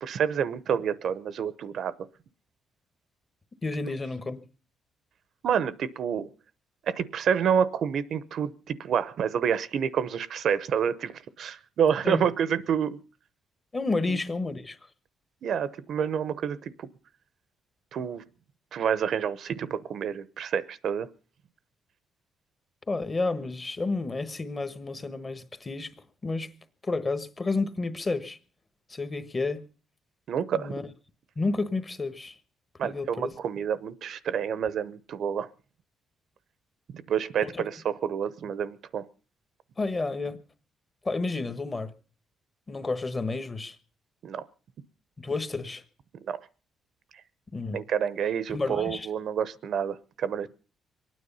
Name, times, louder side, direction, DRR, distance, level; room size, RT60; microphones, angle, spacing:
voice 1, 0.0-2.0 5.4-6.3 6.9-13.0 14.1-14.2 15.4-16.9 17.9-18.2 18.7-21.1 30.3-30.8 32.8-35.5 36.9-39.1 44.2-44.5 46.2-46.5 47.7-50.5, right 8 dB, 60° right, 0.8 m, -28 dB
voice 2, 3.6-4.4 12.0-12.2 13.7-14.8 22.9-25.9 26.2-26.5 26.8-28.4 28.9-29.6 30.5-30.8 31.4-32.4 32.8-33.3 37.4-37.6 39.8-40.4 41.0-41.9 42.7-43.8 45.2-45.8 47.5-47.8 48.5-49.1, left 3 dB, 25° left, 1.2 m, -30 dB
24.0 x 9.5 x 5.5 m
cardioid pair, 130°, 0 cm